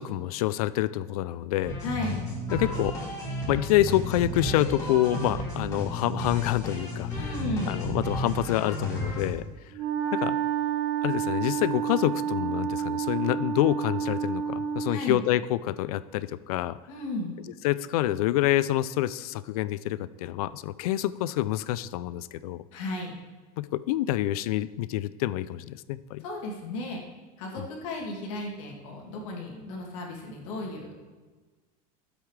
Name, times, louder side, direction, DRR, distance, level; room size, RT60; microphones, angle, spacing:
voice 1, 0.0-1.8 2.5-3.0 3.5-7.1 7.7-9.4 10.1-10.4 11.0-16.8 17.6-22.6 23.6-26.2 27.6-27.7, left 14 dB, 85° left, 17 dB, 0.4 m, -27 dB
sound 1, 1.6-9.3, left 1 dB, 15° left, 2.7 m, -32 dB
voice 2, 1.8-2.2 7.1-7.8 14.9-15.2 16.9-17.4 22.7-23.2 26.2-27.0 27.4-30.9, left 2 dB, 60° left, -1 dB, 2.6 m, -34 dB
Wind instrument woodwind instrument, 9.7-15.1, right 8 dB, 55° right, 1.1 m, -29 dB
12.5 x 8.1 x 3.3 m, 1.4 s
supercardioid pair, 170°, 18 cm